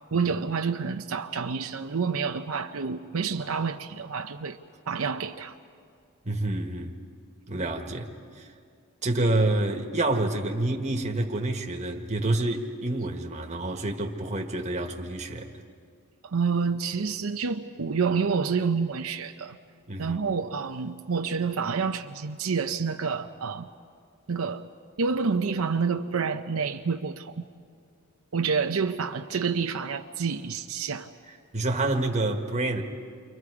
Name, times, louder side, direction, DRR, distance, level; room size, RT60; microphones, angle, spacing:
voice 1, 0.1-4.6 4.9-5.5 16.2-19.6 20.0-23.7 24.3-24.7 25.0-27.4 28.3-31.1, right 5 dB, 85° right, 0.7 m, -28 dB
voice 2, 6.2-6.9 7.5-8.1 8.4-8.5 9.0-15.5 19.9-20.2 31.5-32.8, right 2 dB, 35° right, 1.6 m, -28 dB
29.5 x 24.5 x 4.9 m
head